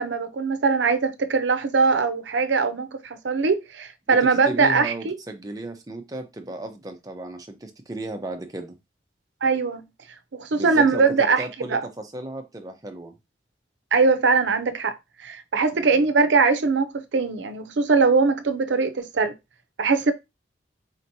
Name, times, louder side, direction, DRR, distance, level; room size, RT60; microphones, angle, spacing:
voice 1, 0.0-5.1 9.4-9.8 10.3-11.8 13.9-14.9 15.2-19.3 19.8-20.1, right 4 dB, 80° right, 0.6 m, -21 dB
voice 2, 4.4-8.8 10.5-13.1 15.7-16.0, right 1 dB, 20° right, 0.6 m, -35 dB
4.4 x 2.9 x 2.7 m
head